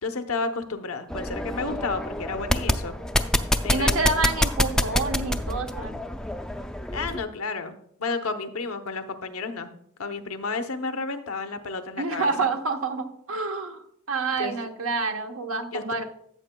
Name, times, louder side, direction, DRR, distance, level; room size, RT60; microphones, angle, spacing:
voice 1, 0.0-2.9 3.6-4.1 6.9-9.7 10.0-12.5 14.4-14.5 15.7-16.0, left 3 dB, 85° left, 7 dB, 0.9 m, -31 dB
sound 1, 1.1-7.2, left 1 dB, 5° left, 0.3 m, -27 dB
voice 2, 3.7-6.0 12.0-16.0, right 3 dB, 75° right, 5 dB, 1.0 m, -28 dB
13.5 x 7.8 x 2.2 m, 0.67 s
head